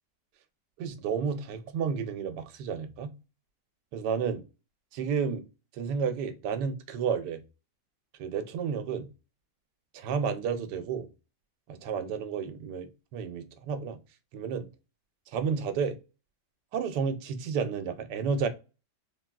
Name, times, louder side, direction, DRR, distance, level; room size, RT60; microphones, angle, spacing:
voice 1, 0.8-3.1 3.9-4.4 4.9-5.4 5.7-7.4 8.2-9.1 9.9-11.1 11.7-14.0 14.3-14.7 15.3-16.0 16.7-18.5, right 6 dB, 80° right, 1.2 m, -31 dB
3.4 x 2.3 x 2.3 m
omnidirectional pair, 1.8 m